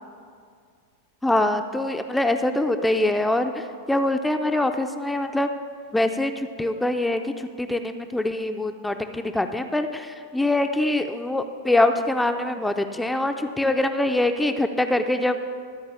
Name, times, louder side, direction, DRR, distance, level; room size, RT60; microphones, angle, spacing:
voice 1, 1.2-5.5 5.9-15.5, left 1 dB, 5° left, 7 dB, 0.5 m, -24 dB
13.0 x 4.7 x 8.0 m, 2.2 s
figure-of-eight pair, 90°, 0 cm